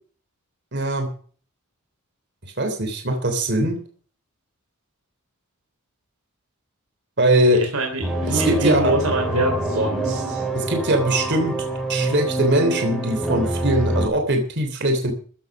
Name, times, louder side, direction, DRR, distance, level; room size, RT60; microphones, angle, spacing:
voice 1, 0.7-1.1 2.6-3.8 7.2-7.6 8.3-8.9 10.5-11.5 11.9-15.1, right 1 dB, 50° right, 5 dB, 3.3 m, -21 dB
voice 2, 7.5-10.4, right 2 dB, 80° right, 3 dB, 3.7 m, -24 dB
sound 1, 8.0-14.1, right 1 dB, ahead, 3.4 m, -25 dB
15.0 x 9.3 x 6.1 m, 0.43 s
head